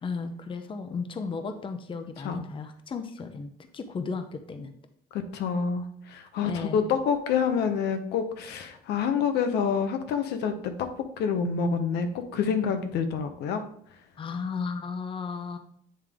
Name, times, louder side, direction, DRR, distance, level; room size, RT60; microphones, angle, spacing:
voice 1, 0.0-4.7 6.4-6.9 14.2-15.6, left 5 dB, 30° left, 8 dB, 0.7 m, -34 dB
voice 2, 5.3-10.9 11.2-12.1 12.3-13.6, left 6 dB, 80° left, 7 dB, 0.8 m, -27 dB
8.8 x 3.6 x 3.5 m, 0.63 s
cardioid pair, 110°, 17 cm